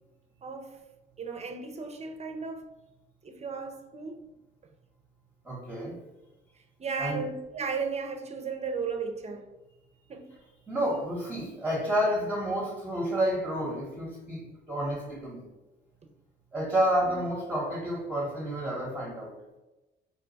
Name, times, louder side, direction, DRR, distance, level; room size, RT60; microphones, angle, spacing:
voice 1, 0.4-0.8 1.2-2.7 3.2-4.3 6.8-9.5 10.1-10.4 17.0-17.2, right 5 dB, 35° right, 0.5 m, -35 dB
voice 2, 5.4-6.0 7.0-7.3 10.7-15.4 16.5-19.4, right 1 dB, 5° right, 0.8 m, -30 dB
3.5 x 2.2 x 3.9 m
cardioid pair, 90°, 20 cm